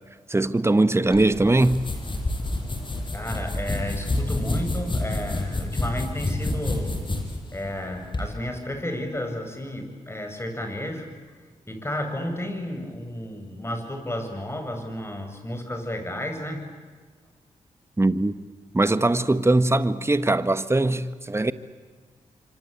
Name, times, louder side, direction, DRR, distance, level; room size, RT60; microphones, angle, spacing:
voice 1, 0.3-1.8 18.0-18.4 18.7-21.5, right 2 dB, 20° right, 1.5 m, -21 dB
sound 1, 1.1-8.3, left 2 dB, 40° left, 7.4 m, -29 dB
voice 2, 3.1-7.0 7.5-11.1 11.7-16.6, left 1 dB, 20° left, 7.9 m, -32 dB
27.0 x 25.5 x 8.5 m
cardioid pair, 50°, 13 cm